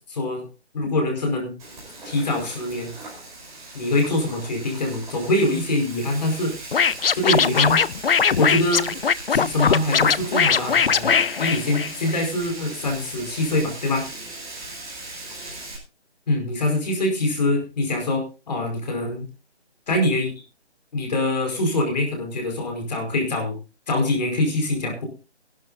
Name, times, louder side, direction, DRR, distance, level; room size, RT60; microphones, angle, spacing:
voice 1, 0.1-0.4 0.7-1.5 2.0-2.9 3.7-6.5 7.1-7.8 8.4-8.8 9.3-11.1 11.4-14.1 16.3-19.3 19.9-20.3 20.9-23.6 23.9-25.1, left 1 dB, 40° left, 4 dB, 5.0 m, -24 dB
Frying (food), 1.6-15.8, right 2 dB, 10° right, 5.3 m, -38 dB
Scratching (performance technique), 6.7-12.2, left 6 dB, 60° left, 0.6 m, -20 dB
21.0 x 12.0 x 2.7 m, 0.31 s
figure-of-eight pair, 165°, 33 cm